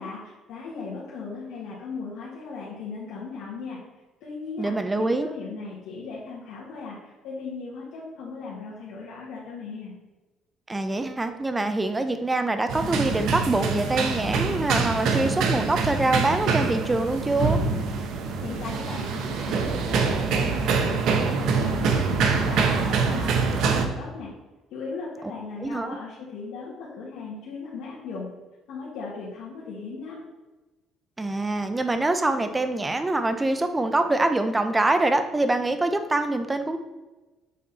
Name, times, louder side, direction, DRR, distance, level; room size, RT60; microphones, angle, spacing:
voice 1, 0.0-3.8 4.2-9.9 18.4-24.3 24.7-28.3 28.7-30.2, left 4 dB, 85° left, -8 dB, 1.9 m, -37 dB
voice 2, 4.6-5.3 10.7-17.6 25.6-26.0 31.2-36.8, right 2 dB, 15° right, 8 dB, 0.7 m, -24 dB
sound 1, 12.7-23.8, right 5 dB, 70° right, 0.9 m, -25 dB
7.3 x 4.3 x 4.2 m, 1.2 s
cardioid pair, 120°, 0 cm